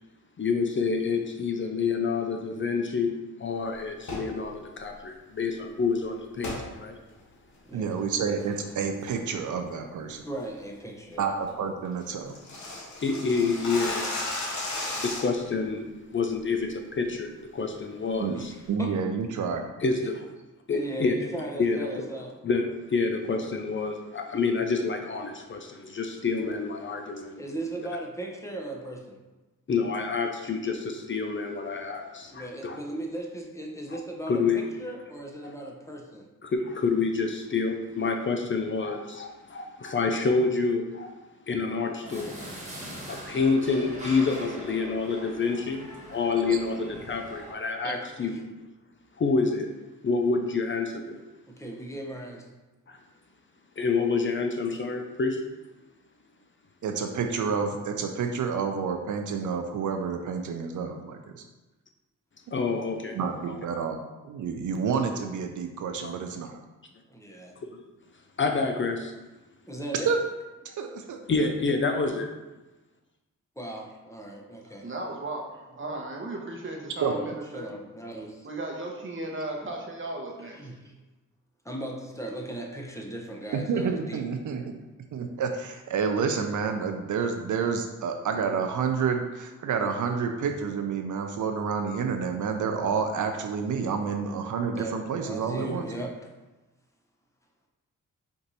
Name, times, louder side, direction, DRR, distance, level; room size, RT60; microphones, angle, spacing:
voice 1, 0.4-3.1 3.4-7.0 13.0-14.1 15.0-18.5 19.8-20.3 20.7-21.1 21.6-21.9 22.4-27.4 29.7-32.8 33.9-34.0 34.3-34.6 36.4-41.1 41.5-42.4 43.1-45.8 46.1-48.4 49.2-49.7 50.0-51.2 52.9-53.0 53.8-55.4 62.5-63.2 63.5-63.6 66.0-66.1 67.7-67.8 68.4-69.1 70.0-70.1 71.3-72.3, left 4 dB, 35° left, 4 dB, 0.5 m, -28 dB
sound 1, 4.0-4.3 6.4-6.6 7.1-7.2 7.7-8.0 8.4-8.7 9.1-9.3 9.7-9.8 10.2-10.4 10.8-10.9 11.2-11.3 11.5-11.6 11.8-15.5, left 2 dB, 60° left, 1.3 m, -34 dB
voice 2, 7.7-10.2 11.2-12.4 18.2-18.4 18.7-19.6 47.8-47.9 56.8-61.4 63.1-66.6 70.1-70.2 70.6-71.2 77.0-77.1 83.5-84.8 85.1-95.9, right 6 dB, 65° right, 5 dB, 0.5 m, -29 dB
voice 3, 10.2-11.3 18.3-18.9 20.7-22.3 27.4-29.2 32.3-36.3 46.5-46.6 47.8-48.4 51.5-52.5 67.1-67.5 69.7-70.1 73.6-74.9 77.1-78.5 80.4-80.8 81.6-84.3 94.7-95.0 95.2-96.2, right 1 dB, 10° left, -1 dB, 0.8 m, -37 dB
sound 2, 42.0-47.5, right 1 dB, 20° right, 1.4 m, -42 dB
voice 4, 74.6-77.7 78.4-80.6, right 2 dB, 35° right, 0 dB, 0.9 m, -35 dB
4.5 x 2.6 x 4.0 m, 1.1 s
cardioid pair, 70°, 33 cm